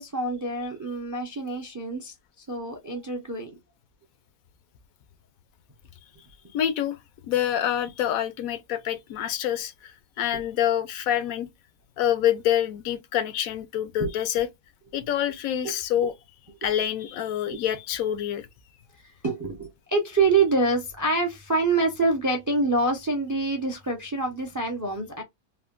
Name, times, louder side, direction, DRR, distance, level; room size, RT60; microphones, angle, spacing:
voice 1, 0.0-3.5 14.0-14.1 15.6-15.7 16.0-16.1 18.1-18.2 19.0-25.2, right 3 dB, 30° right, 0.3 m, -26 dB
voice 2, 6.5-7.0 7.3-11.5 12.0-14.5 14.9-16.1 16.6-18.5, left 10 dB, 80° left, 1.0 m, -26 dB
3.4 x 2.1 x 2.3 m
omnidirectional pair, 1.5 m